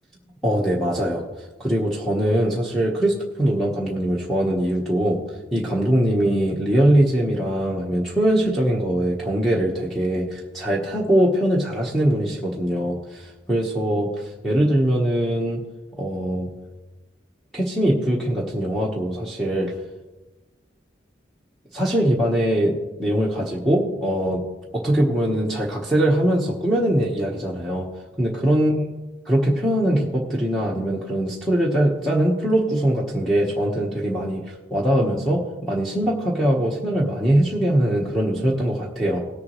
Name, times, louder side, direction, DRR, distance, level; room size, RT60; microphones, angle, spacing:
voice 1, 0.4-1.2 1.6-5.2 5.5-15.6 16.0-16.5 17.5-19.7 21.7-24.4 24.7-27.9 28.2-28.8 29.3-39.2, right 1 dB, ahead, -6 dB, 1.2 m, -22 dB
17.5 x 7.1 x 3.2 m, 1.1 s
head